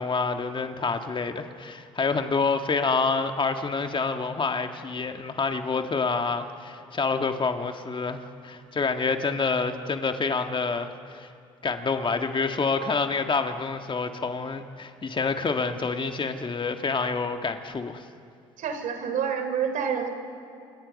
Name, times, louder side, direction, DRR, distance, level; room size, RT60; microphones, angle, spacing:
voice 1, 0.0-11.3 11.6-18.0, left 4 dB, 35° left, 6 dB, 1.8 m, -27 dB
voice 2, 18.6-20.1, right 7 dB, 65° right, 7 dB, 3.5 m, -28 dB
29.0 x 27.5 x 5.4 m, 2.5 s
hypercardioid pair, 60°, 15 cm